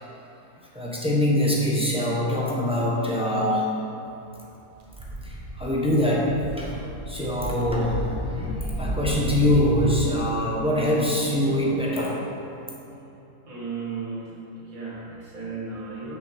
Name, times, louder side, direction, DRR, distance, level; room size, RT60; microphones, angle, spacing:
voice 1, 0.7-3.7 5.2-12.2, left 1 dB, 5° right, -4 dB, 1.0 m, -24 dB
sound 1, 4.8-9.7, right 1 dB, 35° right, 0.8 m, -33 dB
voice 2, 13.5-16.2, right 4 dB, 65° right, -6 dB, 2.4 m, -35 dB
6.4 x 5.6 x 6.4 m, 3.0 s
omnidirectional pair, 1.5 m